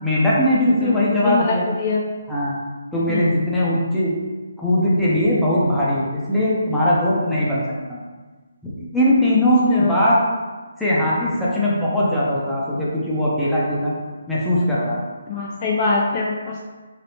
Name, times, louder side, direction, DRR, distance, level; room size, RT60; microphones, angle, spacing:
voice 1, 0.0-1.7 2.3-2.6 2.9-4.1 4.6-7.6 7.9-8.0 8.6-10.2 10.8-13.9 14.3-15.0, left 1 dB, 5° left, -9 dB, 0.7 m, -20 dB
voice 2, 1.2-1.5 1.8-2.0 3.1-3.2 9.7-9.9 15.3-16.7, left 4 dB, 30° left, -2 dB, 0.3 m, -23 dB
3.4 x 2.8 x 2.8 m, 1.3 s
hypercardioid pair, 155°, 0 cm